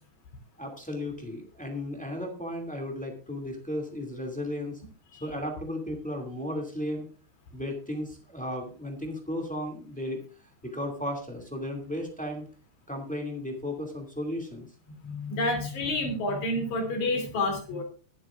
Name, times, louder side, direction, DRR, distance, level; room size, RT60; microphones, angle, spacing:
voice 1, 0.6-4.8 5.2-7.1 7.5-10.2 10.6-12.5 12.9-14.7, left 1 dB, 5° left, 2 dB, 0.6 m, -34 dB
voice 2, 15.0-17.8, left 2 dB, 45° left, 4 dB, 4.0 m, -29 dB
22.5 x 7.9 x 2.5 m, 0.37 s
omnidirectional pair, 5.0 m